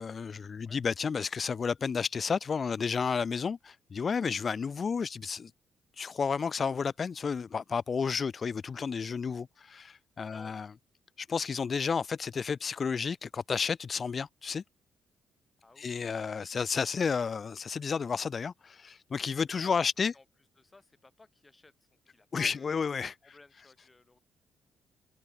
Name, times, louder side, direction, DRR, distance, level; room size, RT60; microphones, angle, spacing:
voice 1, 0.0-5.5 6.0-10.7 11.2-14.6 15.8-20.1 22.3-23.1, left 5 dB, 45° left, 0.4 m, -31 dB
voice 2, 10.3-10.8 15.6-16.2 19.6-19.9 20.1-20.2 20.6-23.0 23.2-24.2, left 3 dB, 25° left, 3.2 m, -58 dB
hypercardioid pair, 45°, 0 cm